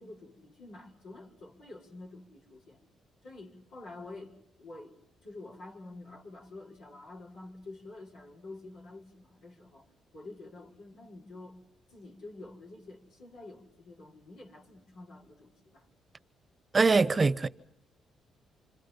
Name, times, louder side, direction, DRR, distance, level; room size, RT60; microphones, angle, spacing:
voice 1, 0.0-2.8 3.2-9.9 10.1-11.6 11.9-15.9, left 2 dB, 85° left, 5.8 m, -48 dB
voice 2, 16.7-17.5, right 4 dB, 30° right, 0.9 m, -23 dB
28.0 x 26.0 x 5.7 m
cardioid pair, 90°, 0 cm